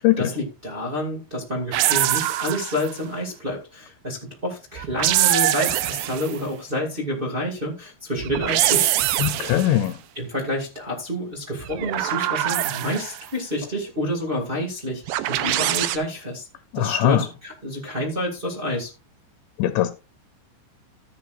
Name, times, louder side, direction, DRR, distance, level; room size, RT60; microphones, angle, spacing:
voice 1, 0.0-8.9 10.1-16.4 16.7-18.9, equal, 30° right, 0.9 m, -28 dB
sound 1, 1.7-3.0 4.8-6.4 8.2-9.8 11.6-13.3 15.1-16.0, right 14 dB, 90° right, 2.0 m, -23 dB
voice 2, 9.2-10.0 16.7-17.2 19.6-19.9, left 13 dB, 80° left, 2.9 m, -20 dB
14.0 x 9.3 x 2.5 m
omnidirectional pair, 5.1 m